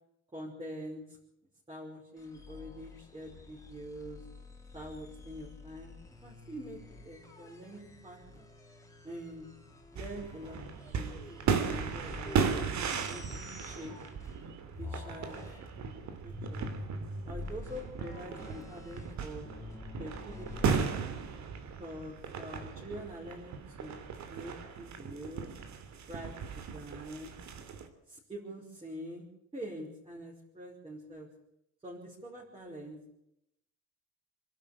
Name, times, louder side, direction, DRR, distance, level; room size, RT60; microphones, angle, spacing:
voice 1, 0.3-1.2 1.7-4.2 4.7-6.0 6.2-6.8 7.0-8.5 9.0-9.5 9.9-10.6 10.9-11.1 11.7-12.4 13.1-13.9 14.8-15.4 16.2-16.6 17.3-19.5 20.0-21.0 21.8-24.0 24.3-25.5 26.1-27.3 28.1-29.3 29.5-31.3 31.8-33.1, equal, 20° right, -3 dB, 5.4 m, -45 dB
sound 1, 2.2-14.4 14.7-20.8, left 2 dB, 10° left, 3.6 m, -47 dB
sound 2, 10.0-27.9, right 6 dB, 65° right, 3.3 m, -36 dB
27.0 x 12.0 x 8.7 m, 0.81 s
cardioid pair, 155°, 30 cm